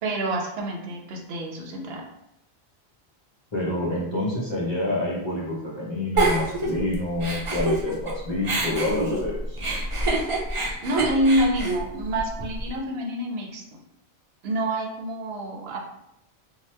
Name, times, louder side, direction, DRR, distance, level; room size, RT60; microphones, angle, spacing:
voice 1, 0.0-2.1 10.8-13.8 14.4-15.8, right 1 dB, 75° right, 0 dB, 0.8 m, -27 dB
voice 2, 3.5-9.6, left 1 dB, 30° left, -7 dB, 0.7 m, -28 dB
Giggle, 6.2-8.1 8.4-12.7, right 2 dB, 40° right, 0.5 m, -26 dB
2.9 x 2.1 x 3.2 m, 0.83 s
omnidirectional pair, 1.1 m